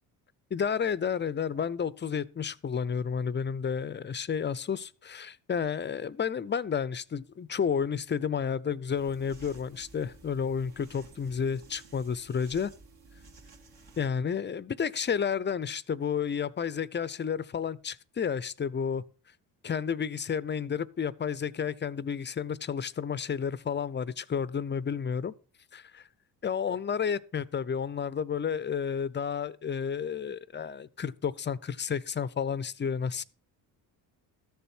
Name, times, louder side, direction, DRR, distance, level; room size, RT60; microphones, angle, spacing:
voice 1, 0.5-12.7 14.0-19.0 19.6-25.3 25.7-26.0 26.4-33.2, left 7 dB, 25° left, 0.5 m, -31 dB
sound 1, 8.9-14.1, right 3 dB, 60° right, 2.7 m, -53 dB
13.5 x 7.0 x 4.4 m
cardioid pair, 85°, 42 cm